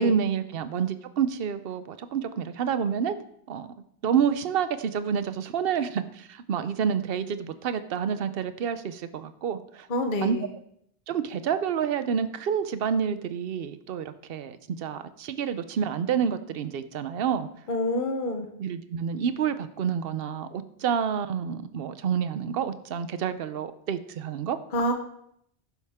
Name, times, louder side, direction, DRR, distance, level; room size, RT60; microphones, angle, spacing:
voice 1, 0.0-3.2 3.5-3.7 4.0-9.9 10.2-10.4 11.1-17.5 18.6-24.6, right 7 dB, 60° right, 12 dB, 0.9 m, -28 dB
voice 2, 9.9-10.4 17.7-18.5 24.7-24.9, left 1 dB, 45° left, 5 dB, 1.2 m, -27 dB
12.0 x 10.0 x 3.6 m, 0.72 s
omnidirectional pair, 1.2 m